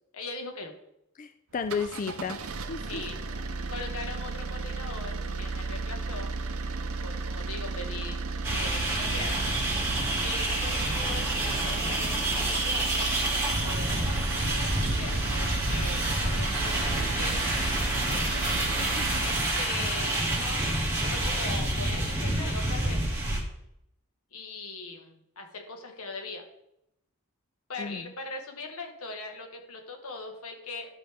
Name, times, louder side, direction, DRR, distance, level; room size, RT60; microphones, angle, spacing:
voice 1, 0.1-0.7 2.9-3.2 3.7-6.3 6.8-8.2 8.5-9.4 9.9-13.1 13.3-18.4 19.2-23.0 24.3-26.4 27.7-30.9, left 3 dB, 85° left, 3 dB, 1.6 m, -40 dB
voice 2, 1.2-2.4 2.7-3.0 18.8-19.1 27.8-28.1, left 5 dB, 35° left, 9 dB, 0.3 m, -33 dB
sound 1, 1.5-19.4, right 3 dB, 80° right, 0.7 m, -34 dB
sound 2, 8.4-23.4, right 1 dB, 15° right, 2.2 m, -28 dB
12.0 x 5.4 x 3.6 m, 0.80 s
head